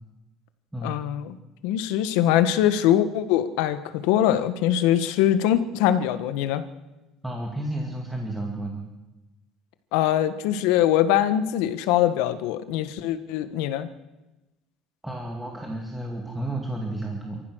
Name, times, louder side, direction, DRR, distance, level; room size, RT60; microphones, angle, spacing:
voice 1, 0.8-1.4 1.6-6.6 9.9-13.9, left 11 dB, 85° left, 11 dB, 1.4 m, -22 dB
voice 2, 7.2-8.9 15.0-17.4, right 1 dB, 5° right, 0 dB, 2.3 m, -32 dB
29.0 x 14.5 x 6.4 m, 1.1 s
cardioid pair, 160°, 0 cm